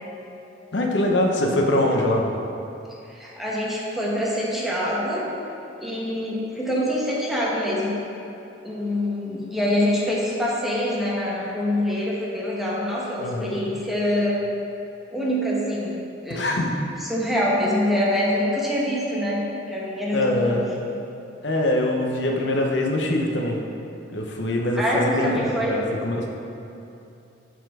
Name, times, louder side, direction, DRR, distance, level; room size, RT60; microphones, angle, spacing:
voice 1, 0.7-2.3 13.2-13.6 16.3-16.7 20.1-20.7 21.4-23.6 24.1-26.3, left 1 dB, 75° left, 1 dB, 0.8 m, -23 dB
voice 2, 3.1-5.2 5.8-8.0 8.6-14.4 15.1-16.5 17.0-20.6 24.8-25.8, equal, ahead, -6 dB, 1.1 m, -25 dB
6.7 x 4.1 x 4.8 m, 2.8 s
head